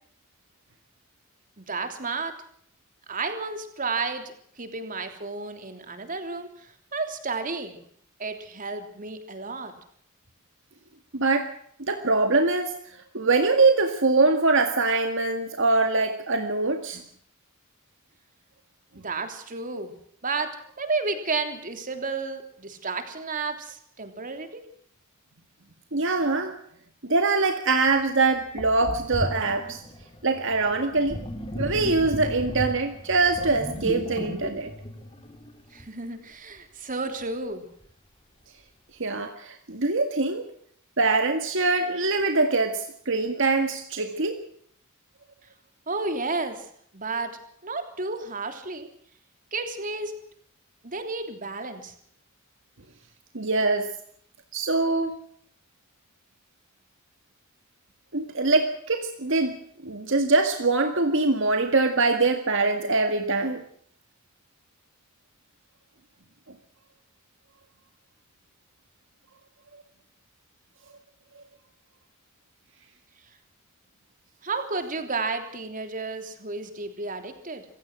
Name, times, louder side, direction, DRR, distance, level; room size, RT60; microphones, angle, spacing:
voice 1, 1.6-2.3 3.1-7.8 8.2-9.7 19.0-19.9 20.2-24.6 35.7-37.7 45.9-46.7 46.9-47.3 47.6-48.9 49.5-50.1 50.8-51.9 74.4-77.7, right 3 dB, 40° right, 7 dB, 3.3 m, -32 dB
voice 2, 11.1-11.5 11.8-12.7 13.1-17.0 25.9-26.5 27.0-29.8 30.2-31.2 31.6-34.7 39.0-40.4 41.0-44.4 53.3-53.9 54.5-55.1 58.1-59.6 59.8-63.6, right 3 dB, 65° right, 6 dB, 1.9 m, -23 dB
Sink (filling or washing), 27.9-28.0 28.6-35.9, equal, 25° left, 3.3 m, -35 dB
26.0 x 16.5 x 6.2 m, 0.64 s
head